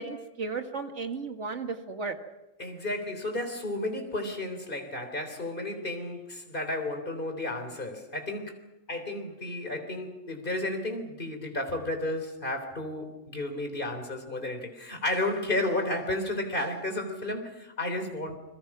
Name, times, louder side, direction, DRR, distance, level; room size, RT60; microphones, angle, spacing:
voice 1, 0.0-2.2, right 4 dB, 65° right, 2.1 m, -34 dB
voice 2, 2.6-8.6 8.9-18.4, left 1 dB, 40° left, 3.9 m, -32 dB
29.5 x 22.5 x 6.1 m
omnidirectional pair, 1.3 m